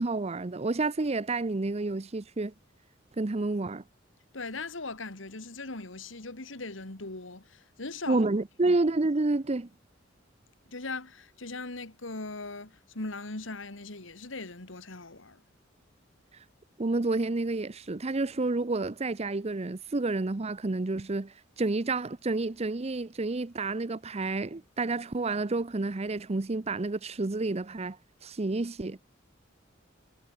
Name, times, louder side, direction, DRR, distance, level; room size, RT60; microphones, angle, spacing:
voice 1, 0.0-2.5 3.2-3.8 8.1-9.7 16.8-28.0 28.2-29.0, right 2 dB, 35° right, 0.7 m, -29 dB
voice 2, 4.3-8.3 8.7-8.8 10.7-15.4, left 3 dB, 80° left, 2.6 m, -39 dB
head